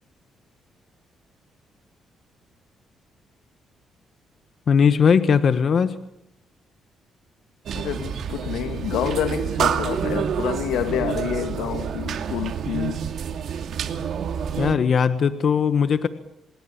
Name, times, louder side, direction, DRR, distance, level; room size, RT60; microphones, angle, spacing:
voice 1, 4.7-5.9 14.6-16.1, left 6 dB, 50° left, 1.4 m, -19 dB
voice 2, 7.7-13.0, left 9 dB, 90° left, 2.4 m, -28 dB
Office Room Tone, 7.7-14.8, right 8 dB, 65° right, 2.5 m, -28 dB
27.0 x 20.5 x 8.8 m
cardioid pair, 90°, 0 cm